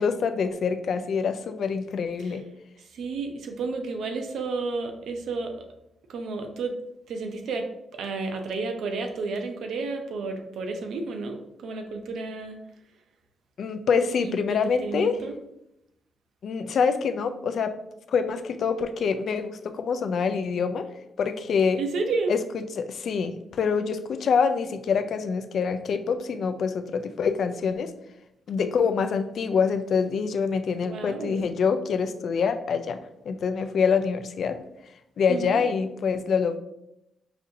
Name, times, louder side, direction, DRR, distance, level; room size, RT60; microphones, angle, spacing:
voice 1, 0.0-2.4 13.6-15.2 16.4-17.8 18.1-20.9 21.2-21.8 22.3-27.9 28.5-33.0 33.3-34.6 35.2-36.6, left 6 dB, 65° left, 9 dB, 0.3 m, -25 dB
voice 2, 2.9-5.7 6.1-6.7 7.1-7.7 7.9-12.6 14.2-15.3 21.8-22.3 30.8-31.4 35.3-35.6, right 3 dB, 85° right, 5 dB, 0.5 m, -31 dB
5.0 x 2.6 x 2.7 m, 0.84 s
cardioid pair, 100°, 0 cm